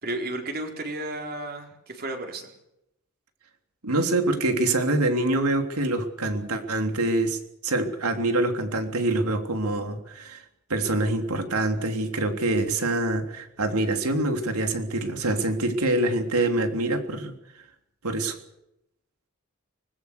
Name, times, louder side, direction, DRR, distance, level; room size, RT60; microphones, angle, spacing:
voice 1, 0.0-2.5, right 2 dB, 45° right, 3 dB, 4.3 m, -33 dB
voice 2, 3.8-10.4 10.7-17.3 18.0-18.4, right 2 dB, 85° right, 5 dB, 3.4 m, -25 dB
25.0 x 20.5 x 6.8 m, 0.82 s
head